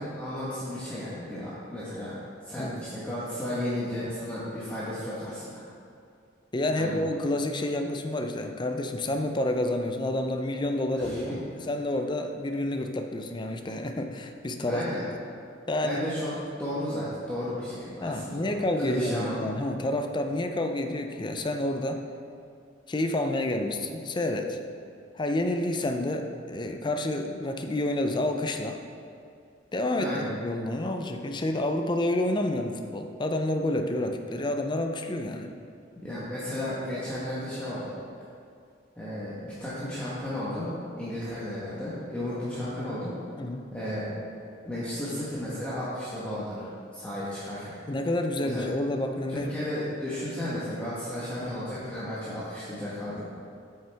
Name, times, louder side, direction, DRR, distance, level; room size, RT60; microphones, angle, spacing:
voice 1, 0.0-2.2 2.4-5.5 6.8-7.0 10.9-11.4 14.7-15.0 15.8-16.3 16.6-18.5 18.8-19.3 30.0-30.3 36.0-37.9 39.0-40.7 40.9-43.1 43.7-44.1 44.6-47.7 48.4-48.6 49.3-53.2, left 1 dB, 10° left, -10 dB, 1.2 m, -33 dB
voice 2, 6.5-11.3 11.7-14.8 15.7-16.0 18.0-22.0 22.9-24.6 25.2-28.8 29.7-30.1 30.4-35.5 43.4-43.6 47.9-49.5 51.4-51.5, left 1 dB, 25° left, 5 dB, 0.5 m, -29 dB
8.9 x 6.6 x 3.4 m, 2.4 s
head